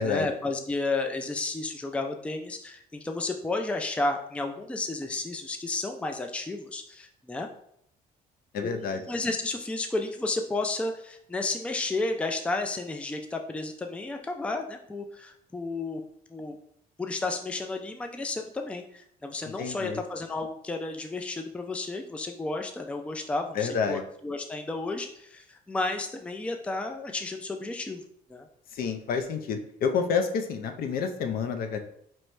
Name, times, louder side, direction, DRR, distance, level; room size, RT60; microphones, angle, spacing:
voice 1, 0.0-7.5 8.6-16.0 16.3-16.6 17.0-28.0 28.3-28.5, left 3 dB, 5° left, 4 dB, 0.4 m, -32 dB
voice 2, 8.5-9.0 19.6-20.0 23.5-24.0 28.7-31.8, left 6 dB, 60° left, 7 dB, 0.6 m, -29 dB
4.5 x 3.0 x 3.2 m, 0.70 s
cardioid pair, 110°, 17 cm